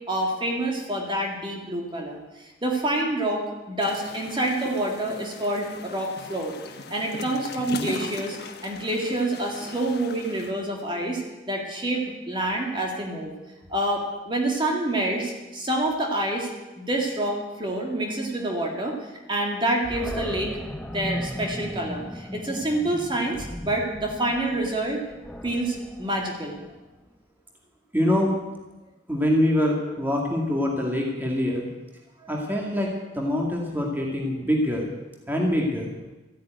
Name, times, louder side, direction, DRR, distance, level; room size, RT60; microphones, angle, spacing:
voice 1, 0.1-2.2 2.6-6.5 6.9-8.4 8.6-11.2 11.5-13.3 13.7-16.5 16.8-18.9 19.3-20.6 20.9-25.0 25.4-26.6, right 1 dB, 25° right, 0 dB, 2.2 m, -27 dB
sound 1, 3.8-10.5, left 3 dB, 60° left, 1.2 m, -38 dB
Animal, 19.8-27.0, equal, 5° left, 0.6 m, -37 dB
voice 2, 27.9-28.3 29.1-31.7 32.3-34.9 35.3-35.9, left 1 dB, 10° right, -1 dB, 2.1 m, -24 dB
13.5 x 9.2 x 9.1 m, 1.1 s
head